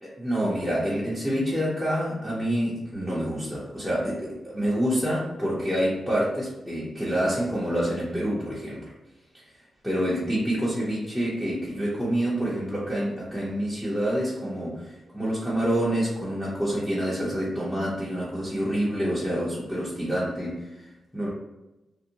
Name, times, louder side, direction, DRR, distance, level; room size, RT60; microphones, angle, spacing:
voice 1, 0.0-8.8 9.3-9.5 9.8-21.3, equal, ahead, -8 dB, 0.6 m, -27 dB
2.6 x 2.0 x 2.7 m, 1.0 s
wide cardioid pair, 115°, 0 cm